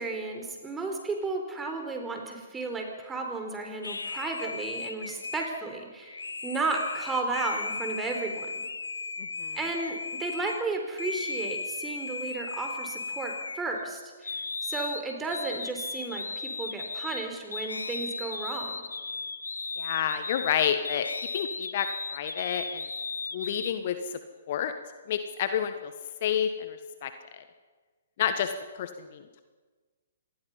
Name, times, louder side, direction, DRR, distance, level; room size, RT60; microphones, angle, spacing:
voice 1, 0.0-8.7 9.5-18.8, right 3 dB, 10° right, 3 dB, 4.2 m, -33 dB
sound 1, 3.8-10.6 11.0-13.9 14.2-23.7, left 4 dB, 75° left, 1.2 m, -36 dB
voice 2, 19.8-21.1 21.3-21.9 22.1-22.9 23.3-24.2 24.5-24.7 25.1-25.9 26.2-27.4 28.2-29.4, left 9 dB, 45° left, 9 dB, 1.4 m, -30 dB
26.5 x 20.0 x 5.7 m, 1.4 s
figure-of-eight pair, 120°, 0 cm